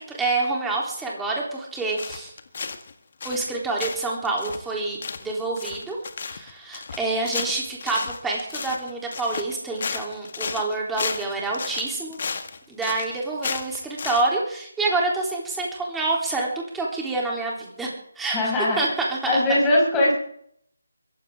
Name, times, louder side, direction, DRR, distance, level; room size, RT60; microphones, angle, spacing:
voice 1, 0.0-2.3 3.2-6.0 6.2-12.2 12.7-18.4 18.8-19.6, right 3 dB, 5° right, -3 dB, 3.5 m, -27 dB
sound 1, 2.0-2.9 3.2-3.5 3.8-14.3, left 5 dB, 40° left, 1.6 m, -33 dB
voice 2, 18.3-18.8 19.2-20.1, left 1 dB, 10° left, -4 dB, 6.0 m, -20 dB
22.5 x 16.0 x 3.8 m, 0.69 s
figure-of-eight pair, 155°, 0 cm